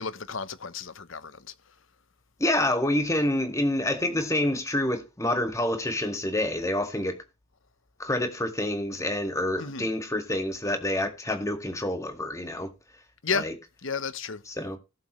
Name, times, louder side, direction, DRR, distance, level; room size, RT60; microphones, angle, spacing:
voice 1, 0.0-1.5 9.6-9.9 13.2-13.5 13.8-14.4, left 5 dB, 60° left, 1.0 m, -32 dB
voice 2, 2.4-7.2 8.0-12.7 13.3-13.6 14.5-14.8, left 1 dB, 15° left, 1.9 m, -27 dB
18.0 x 7.3 x 3.2 m
head